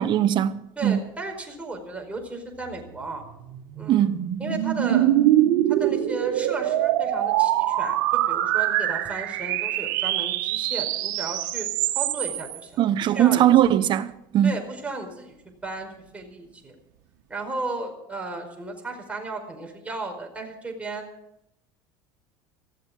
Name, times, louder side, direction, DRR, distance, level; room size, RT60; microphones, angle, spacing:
voice 1, 0.0-1.1 3.9-4.3 12.8-14.6, right 11 dB, 45° right, 1.1 m, -20 dB
voice 2, 0.8-3.2 3.7-4.1 4.4-5.1 5.7-11.7 11.9-13.5 14.4-15.3 15.6-16.7 17.3-21.1, right 2 dB, 10° right, 4.9 m, -34 dB
sound 1, 2.9-12.6, right 13 dB, 80° right, 1.7 m, -24 dB
19.0 x 14.5 x 5.1 m
supercardioid pair, 105°, 10 cm